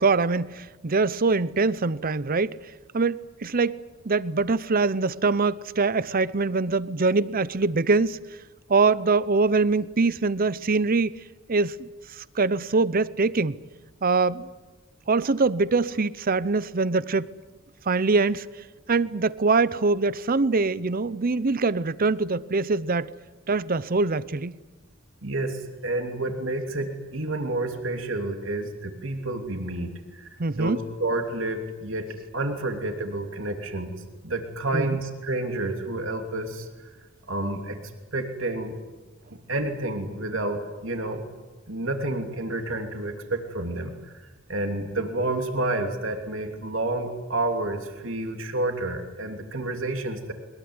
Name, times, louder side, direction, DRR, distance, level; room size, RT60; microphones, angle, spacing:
voice 1, 0.0-2.6 2.9-8.2 8.7-11.2 11.5-11.9 12.2-13.6 14.0-14.5 15.1-17.3 17.9-18.5 18.9-23.1 23.5-24.6 30.4-30.8 34.7-35.0, right 3 dB, 45° right, 0.7 m, -23 dB
voice 2, 25.2-32.1 32.3-33.9 34.2-36.9 37.3-37.8 38.1-38.8 39.3-41.2 41.7-50.3, right 2 dB, 70° right, 3.1 m, -29 dB
22.5 x 21.5 x 9.7 m
head